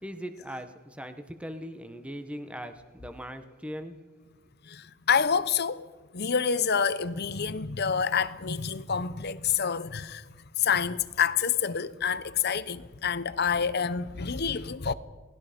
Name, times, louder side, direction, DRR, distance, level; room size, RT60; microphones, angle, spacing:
voice 1, 0.0-4.0, equal, 5° right, 1.2 m, -40 dB
voice 2, 4.6-5.9 6.1-10.3 10.6-14.9, left 6 dB, 50° left, 0.8 m, -27 dB
28.5 x 19.5 x 5.2 m
head